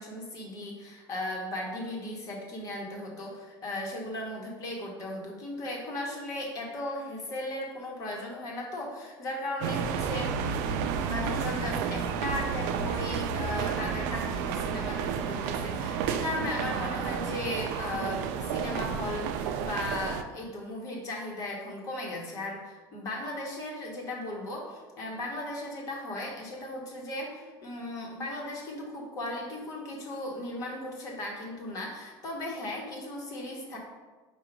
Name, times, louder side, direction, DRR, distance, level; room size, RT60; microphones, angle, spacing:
voice 1, 0.0-10.4 11.0-33.8, left 1 dB, 40° left, -1 dB, 0.9 m, -36 dB
sound 1, 9.6-20.2, right 7 dB, 85° right, 0.3 m, -31 dB
4.9 x 2.2 x 4.5 m, 1.3 s
cardioid pair, 160°, 9 cm